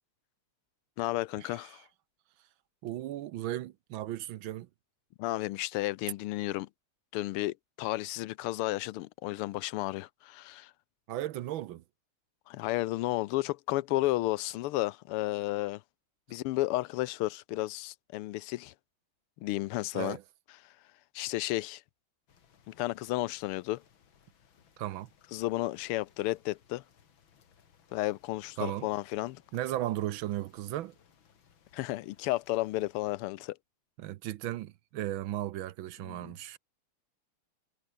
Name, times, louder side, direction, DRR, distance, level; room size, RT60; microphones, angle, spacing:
voice 1, 1.0-1.8 5.2-6.7 7.1-10.7 12.5-15.8 16.3-18.7 19.4-20.2 21.1-21.8 22.7-23.8 25.3-26.8 27.9-29.4 31.7-33.6 36.0-36.6, left 17 dB, 85° left, 1.5 m, -32 dB
voice 2, 2.8-4.7 11.1-11.8 19.9-20.2 24.8-25.1 28.6-28.9 29.5-30.9 34.0-36.6, right 13 dB, 70° right, 1.4 m, -36 dB
sound 1, 22.3-33.2, left 7 dB, 65° left, 2.6 m, -65 dB
omnidirectional pair, 2.4 m